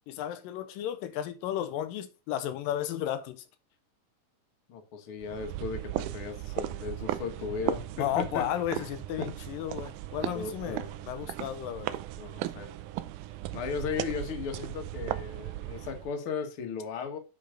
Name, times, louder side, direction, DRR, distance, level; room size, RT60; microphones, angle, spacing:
voice 1, 0.1-3.4 8.0-10.8 11.1-12.0, left 11 dB, 85° left, 2.4 m, -33 dB
voice 2, 4.7-8.9 9.2-9.4 10.3-11.1 12.2-12.7 13.5-17.2, left 6 dB, 50° left, 2.0 m, -36 dB
sound 1, 5.2-16.1, right 14 dB, 80° right, 1.9 m, -37 dB
8.6 x 5.7 x 3.8 m
omnidirectional pair, 4.0 m